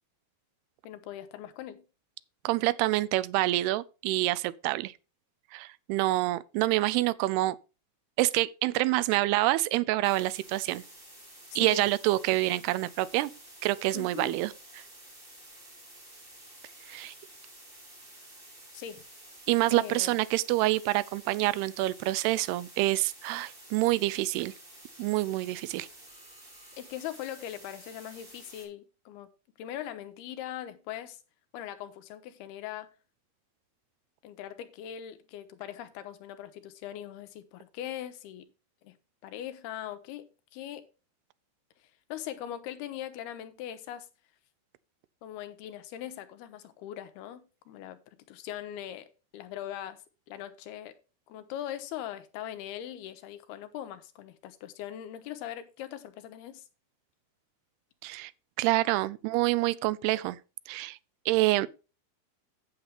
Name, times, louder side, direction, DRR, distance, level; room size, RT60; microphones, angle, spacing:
voice 1, 0.8-1.8 11.5-11.9 13.9-14.4 18.7-19.0 19.7-20.2 26.8-29.3 29.6-31.2 31.5-32.9 34.2-38.5 38.8-39.0 39.2-40.9 42.1-44.1 45.2-48.0 48.3-50.0 50.3-51.0 51.3-56.6, left 11 dB, 85° left, 2.9 m, -41 dB
voice 2, 2.5-4.9 5.5-7.6 8.2-10.8 11.6-13.3 13.6-14.8 16.9-17.1 19.5-24.5 25.0-25.9 58.0-58.3 58.6-60.4 60.7-61.0 61.3-61.7, right 18 dB, 85° right, 2.6 m, -27 dB
sound 1, 10.0-28.7, right 1 dB, 15° right, 2.9 m, -51 dB
8.8 x 8.1 x 3.4 m
omnidirectional pair, 4.5 m